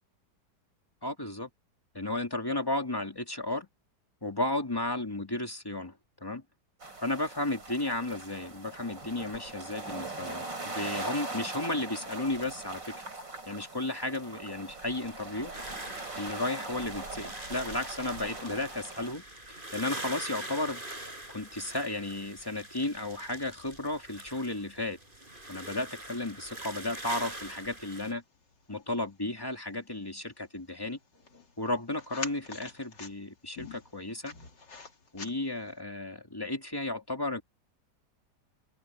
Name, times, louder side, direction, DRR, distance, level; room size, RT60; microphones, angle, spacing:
voice 1, 1.0-1.5 1.9-3.7 4.2-5.9 6.2-6.4 7.0-13.0 13.5-15.5 16.2-20.8 21.3-25.0 25.5-28.2 28.7-31.0 31.6-34.3 35.1-37.4, left 2 dB, 15° left, 2.0 m, -34 dB
sound 1, 6.8-19.1, right 2 dB, 90° right, 6.5 m, -41 dB
sound 2, 15.5-28.1, right 1 dB, 25° right, 6.4 m, -44 dB
sound 3, 16.8-35.8, left 5 dB, 75° left, 3.4 m, -51 dB
open air
omnidirectional pair, 1.9 m